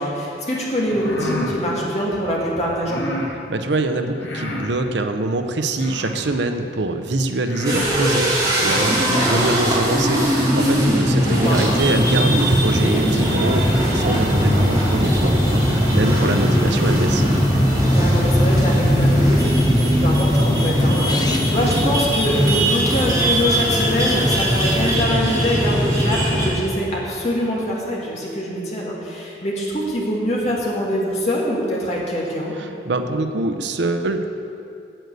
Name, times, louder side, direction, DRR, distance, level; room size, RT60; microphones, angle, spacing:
voice 1, 0.0-3.0 8.9-9.3 11.2-11.6 17.9-32.5, equal, 40° left, -4 dB, 2.4 m, -24 dB
sound 1, 0.8-1.6 2.8-3.3 4.2-4.7 5.7-6.3 7.0-7.1 7.4-8.0 8.8-9.4, left 1 dB, 85° left, 1.8 m, -29 dB
voice 2, 3.5-17.2 32.6-34.3, right 2 dB, 85° right, 7 dB, 0.8 m, -24 dB
sound 2, 7.6-26.6, equal, 20° right, 2.7 m, -19 dB
sound 3, 11.4-24.9, left 1 dB, 25° left, 0.7 m, -29 dB
9.0 x 8.0 x 8.3 m, 2.7 s
head